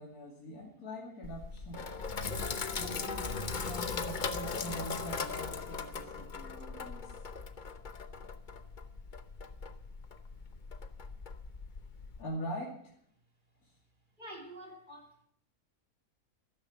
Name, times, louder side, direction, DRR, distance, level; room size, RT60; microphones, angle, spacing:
voice 1, 0.0-1.8 2.8-7.1 12.2-12.9, right 1 dB, 70° left, -3 dB, 3.2 m, -43 dB
Sink (filling or washing), 1.2-12.2, left 5 dB, 40° left, 0.9 m, -39 dB
voice 2, 14.2-15.2, right 1 dB, 30° right, 1 dB, 3.4 m, -48 dB
12.5 x 12.0 x 7.1 m, 0.64 s
omnidirectional pair, 1.6 m